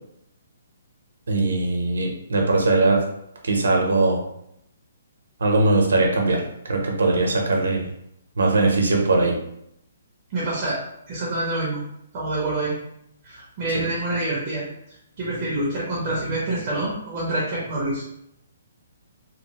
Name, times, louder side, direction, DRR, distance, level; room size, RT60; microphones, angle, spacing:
voice 1, 1.3-3.0 3.4-4.2 5.4-7.9 8.4-9.4 13.7-13.8, right 2 dB, 85° right, 1 dB, 0.7 m, -20 dB
voice 2, 10.3-10.8 11.1-11.8 12.1-12.8 13.2-18.0, right 2 dB, 20° right, -5 dB, 0.6 m, -27 dB
2.9 x 2.0 x 2.9 m, 0.76 s
hypercardioid pair, 175°, 0 cm